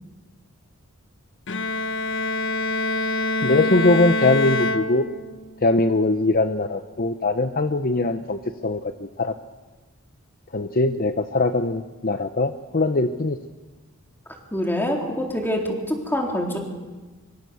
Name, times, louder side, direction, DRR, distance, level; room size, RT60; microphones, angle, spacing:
Bowed string instrument, 1.5-5.5, left 2 dB, 60° left, 1.4 m, -25 dB
voice 1, 3.4-5.0 5.6-9.3 10.5-13.4, left 2 dB, 45° left, 9 dB, 0.9 m, -21 dB
voice 2, 14.5-16.6, equal, 10° left, 1 dB, 3.8 m, -25 dB
25.5 x 24.0 x 7.0 m, 1.3 s
head